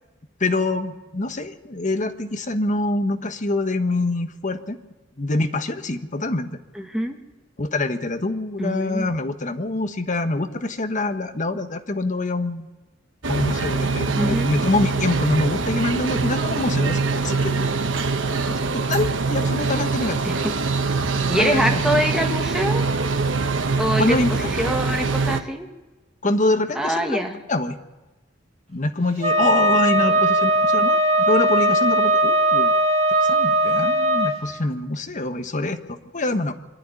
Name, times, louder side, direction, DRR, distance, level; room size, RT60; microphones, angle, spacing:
voice 1, 0.4-4.8 5.2-6.5 7.6-12.7 13.3-17.7 18.3-20.3 21.3-21.8 23.7-24.3 26.2-27.2 27.5-27.8 28.7-32.7 33.2-36.5, left 2 dB, 40° left, 8 dB, 1.3 m, -25 dB
voice 2, 6.7-7.2 8.6-9.1 14.2-14.5 20.2-20.5 21.3-22.8 23.8-25.7 26.8-27.4 30.0-30.2, right 1 dB, 5° right, 3 dB, 1.9 m, -24 dB
sound 1, 13.2-25.4, right 4 dB, 75° right, 1.2 m, -23 dB
Wind instrument woodwind instrument, 29.2-34.4, right 1 dB, 35° right, 2.2 m, -19 dB
24.0 x 11.5 x 9.8 m, 1.1 s
head